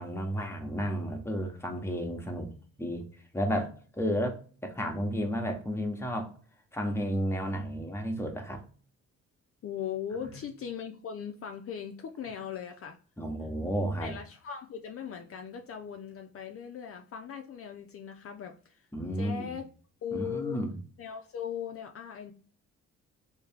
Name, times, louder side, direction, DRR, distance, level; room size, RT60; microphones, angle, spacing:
voice 1, 0.0-2.5 2.8-3.0 3.3-4.4 4.6-6.3 6.7-8.6 10.2-10.3 13.2-14.1 18.9-19.5 20.1-20.7, equal, 10° left, 2 dB, 1.0 m, -32 dB
voice 2, 9.6-13.0 14.0-18.9 19.2-19.7 20.0-20.6 21.0-22.3, left 8 dB, 50° left, 4 dB, 0.5 m, -39 dB
3.3 x 2.8 x 3.5 m, 0.40 s
cardioid pair, 90°, 30 cm